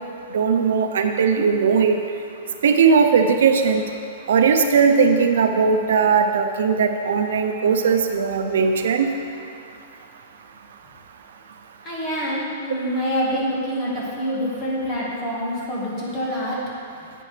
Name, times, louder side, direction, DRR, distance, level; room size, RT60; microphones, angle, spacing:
voice 1, 0.3-2.0 2.6-3.8 4.3-9.1, right 5 dB, 80° right, 5 dB, 0.7 m, -18 dB
voice 2, 11.8-16.6, equal, 20° left, -6 dB, 1.9 m, -26 dB
10.5 x 8.5 x 3.4 m, 2.5 s
supercardioid pair, 175°, 0 cm